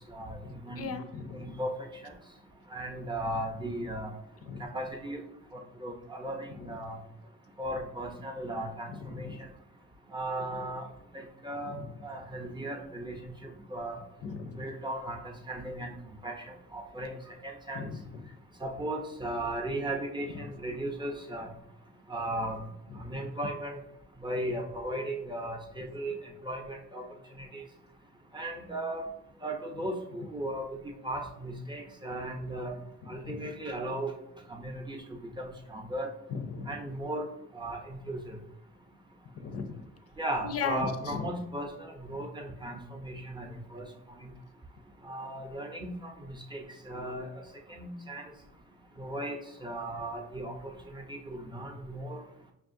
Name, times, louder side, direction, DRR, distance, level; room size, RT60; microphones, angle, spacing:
voice 1, 0.8-1.5 4.5-4.6 14.2-14.6 17.8-18.0 33.3-33.4 36.3-36.8 39.4-39.8 40.4-41.2, left 6 dB, 50° left, 8 dB, 0.5 m, -36 dB
voice 2, 1.4-1.7 2.0-2.1 2.7-4.1 4.6-5.2 5.5-7.0 7.6-9.5 10.1-10.9 11.1-11.8 12.0-14.0 14.6-15.9 16.2-17.2 17.4-17.9 18.6-21.5 22.1-22.6 23.0-23.8 24.2-26.1 26.4-27.1 27.4-27.6 28.3-29.1 29.4-30.8 31.0-32.8 33.1-34.1 34.5-35.0 35.4-36.1 36.7-37.3 37.5-38.4 40.2-43.9 44.2-44.3 45.0-47.3 47.7-48.3 49.0-49.4 49.6-52.2, right 1 dB, 15° right, 2 dB, 0.7 m, -36 dB
5.5 x 2.4 x 2.6 m, 0.85 s
cardioid pair, 90°, 30 cm